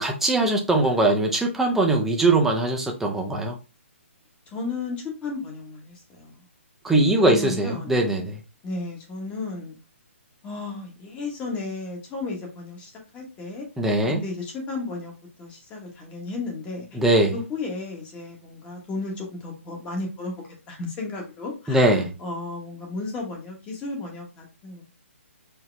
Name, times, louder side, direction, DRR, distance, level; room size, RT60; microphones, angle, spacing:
voice 1, 0.0-3.6 6.8-8.4 13.8-14.2 16.9-17.4 21.7-22.1, right 2 dB, 5° right, 0.6 m, -21 dB
voice 2, 4.5-6.4 7.2-8.1 8.6-9.8 10.4-13.7 14.2-15.1 15.4-17.0 17.3-24.8, left 3 dB, 15° left, 1.3 m, -34 dB
4.6 x 2.8 x 3.3 m
hypercardioid pair, 155°, 7 cm